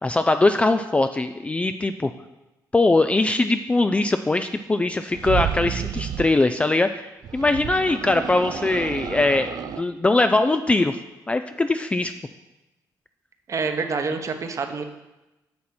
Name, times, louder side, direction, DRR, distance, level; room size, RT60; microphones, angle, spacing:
voice 1, 0.0-2.1 2.7-11.0 11.3-12.1, left 2 dB, 15° left, 9 dB, 0.4 m, -21 dB
sound 1, 5.1-6.4 7.2-9.9, right 9 dB, 65° right, 0.4 m, -30 dB
voice 2, 13.5-14.8, right 4 dB, 45° right, 6 dB, 1.0 m, -27 dB
9.5 x 6.2 x 4.3 m, 1.0 s
cardioid pair, 90°, 7 cm